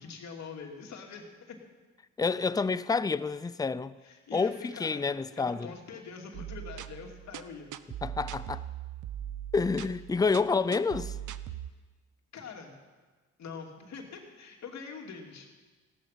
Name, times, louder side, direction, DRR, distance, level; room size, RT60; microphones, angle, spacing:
voice 1, 0.0-1.6 4.0-5.0 5.4-7.7 12.3-12.7 13.4-15.5, left 5 dB, 65° left, 2.7 m, -44 dB
voice 2, 2.2-3.9 4.3-5.7 8.0-8.6 9.5-11.2, left 4 dB, 10° left, 0.5 m, -28 dB
sound 1, 6.3-11.7, right 11 dB, 80° right, 0.7 m, -40 dB
16.5 x 12.5 x 5.8 m
cardioid pair, 90°, 30 cm